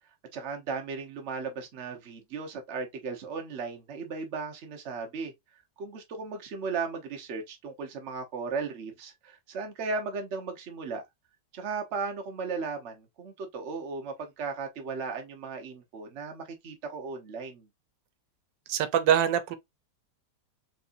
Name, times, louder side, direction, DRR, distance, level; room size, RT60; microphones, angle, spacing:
voice 1, 0.3-5.3 5.8-11.0 11.5-17.7, right 4 dB, 45° right, 1.1 m, -36 dB
voice 2, 18.7-19.6, right 9 dB, 90° right, 1.3 m, -24 dB
4.3 x 3.2 x 2.5 m
omnidirectional pair, 1.9 m